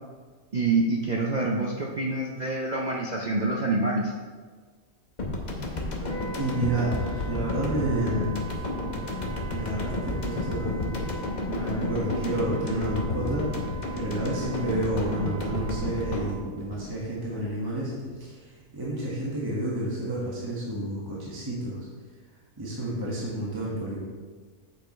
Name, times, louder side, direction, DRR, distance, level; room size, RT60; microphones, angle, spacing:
voice 1, 0.5-4.1, right 2 dB, 50° right, -1 dB, 0.5 m, -26 dB
sound 1, 5.2-17.7, left 2 dB, 40° left, 0.9 m, -32 dB
Wind instrument woodwind instrument, 6.0-16.4, right 3 dB, 20° left, 0.4 m, -43 dB
voice 2, 6.4-8.4 9.5-11.1 11.4-21.8 22.6-24.0, right 1 dB, 15° right, -6 dB, 1.4 m, -30 dB
7.5 x 6.6 x 3.2 m, 1.5 s
omnidirectional pair, 1.4 m